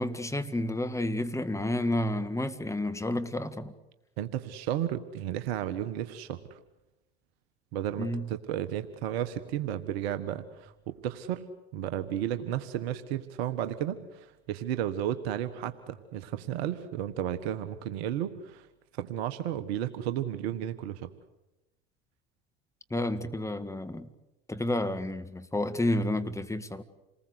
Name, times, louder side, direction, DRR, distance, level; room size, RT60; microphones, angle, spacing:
voice 1, 0.0-3.7 8.0-8.3 22.9-24.1 24.5-26.8, left 1 dB, 10° left, 1.8 m, -30 dB
voice 2, 4.2-6.6 7.7-11.5 11.7-18.7 18.9-21.1, right 11 dB, 75° right, 1.5 m, -33 dB
28.0 x 20.0 x 8.1 m
hypercardioid pair, 75°, 32 cm